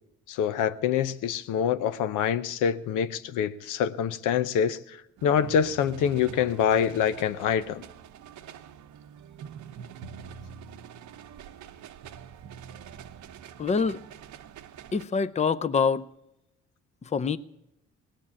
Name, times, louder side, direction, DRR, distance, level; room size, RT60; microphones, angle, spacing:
voice 1, 0.3-7.8, left 8 dB, 90° left, 0.7 m, -26 dB
sound 1, 5.2-15.0, right 7 dB, 75° right, 0.8 m, -45 dB
voice 2, 13.6-14.0 14.9-16.1 17.1-17.4, left 5 dB, 25° left, 0.5 m, -25 dB
18.0 x 7.2 x 8.6 m
cardioid pair, 90°, 30 cm